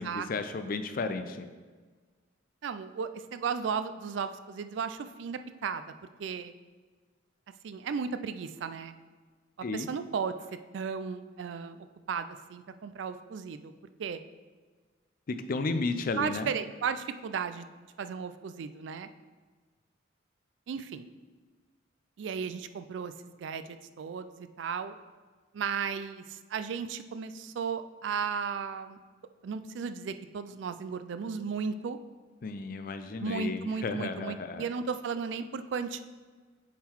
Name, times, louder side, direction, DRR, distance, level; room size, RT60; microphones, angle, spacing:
voice 1, 0.0-1.5 9.6-9.9 15.3-16.5 32.4-34.6, left 3 dB, 45° left, 8 dB, 0.4 m, -33 dB
voice 2, 2.6-5.8 6.2-6.5 7.6-8.9 9.7-10.3 10.7-13.7 14.0-14.2 16.2-17.7 18.0-19.1 20.7-21.1 22.2-23.1 23.4-25.0 25.5-29.0 29.4-32.0 33.2-36.0, right 6 dB, 70° right, 11 dB, 0.3 m, -35 dB
7.2 x 3.8 x 4.5 m, 1.4 s
head